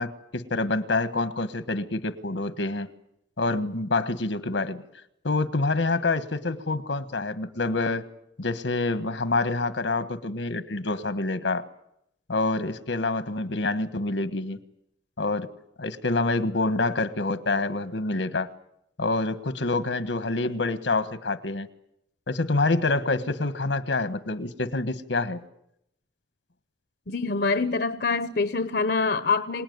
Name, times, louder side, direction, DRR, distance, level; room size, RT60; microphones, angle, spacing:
voice 1, 0.0-2.9 3.4-4.8 5.2-8.0 8.4-11.7 12.3-14.6 15.2-15.5 15.8-18.5 19.0-21.7 22.3-25.4, left 3 dB, 85° left, 13 dB, 1.4 m, -27 dB
voice 2, 27.1-29.6, left 4 dB, 60° left, 12 dB, 0.9 m, -25 dB
26.0 x 18.5 x 9.5 m, 0.79 s
head